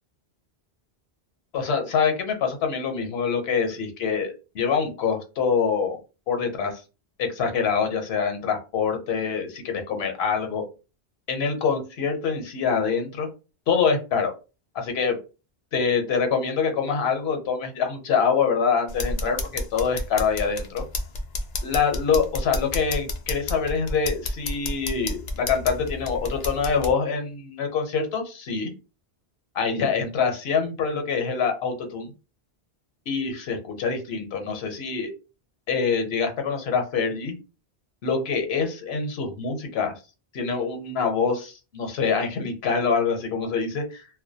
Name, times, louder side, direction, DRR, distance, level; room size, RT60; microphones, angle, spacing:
voice 1, 1.5-6.0 6.3-6.7 7.2-10.6 11.3-13.3 13.7-14.3 14.7-15.2 15.7-20.8 21.6-28.7 29.6-32.1 33.1-35.1 35.7-37.4 38.0-39.9 40.3-44.1, left 6 dB, 75° left, 4 dB, 0.9 m, -25 dB
sound 1, 18.9-26.9, left 2 dB, 55° left, 0.5 m, -31 dB
2.2 x 2.1 x 2.6 m, 0.31 s
omnidirectional pair, 1.1 m